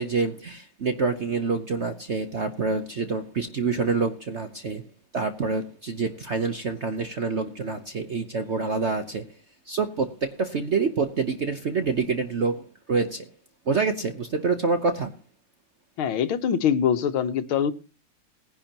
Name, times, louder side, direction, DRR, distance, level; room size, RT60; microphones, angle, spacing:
voice 1, 0.0-4.8 5.1-9.2 9.7-13.3 13.7-15.1, right 4 dB, 55° right, 8 dB, 0.8 m, -27 dB
voice 2, 16.0-17.7, left 8 dB, 85° left, 12 dB, 1.8 m, -23 dB
19.0 x 10.5 x 2.9 m, 0.34 s
omnidirectional pair, 2.2 m